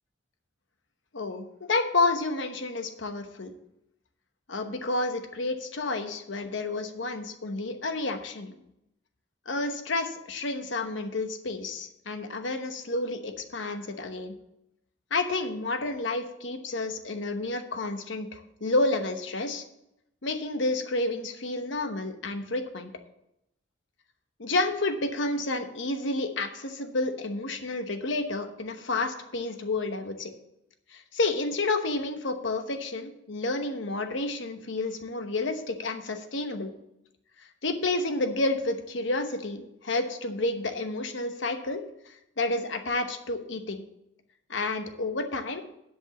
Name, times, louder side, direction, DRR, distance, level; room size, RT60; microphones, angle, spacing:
voice 1, 1.1-3.5 4.5-8.5 9.5-14.3 15.1-19.6 20.2-22.9 24.4-30.3 30.9-36.7 37.6-43.9 44.5-45.6, left 2 dB, 75° left, 7 dB, 1.0 m, -30 dB
9.9 x 5.4 x 7.0 m, 0.83 s
head